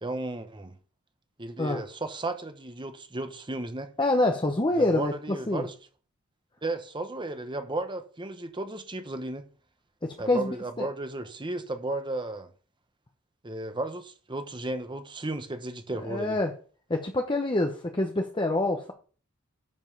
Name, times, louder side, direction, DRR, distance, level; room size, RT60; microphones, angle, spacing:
voice 1, 0.0-0.7 1.4-3.9 4.9-5.7 6.6-9.5 10.2-12.5 13.4-16.4, right 2 dB, 20° right, 1.0 m, -34 dB
voice 2, 4.0-5.7 10.0-10.9 16.0-16.5 16.9-18.9, left 2 dB, 20° left, 0.9 m, -26 dB
11.0 x 5.4 x 5.4 m
head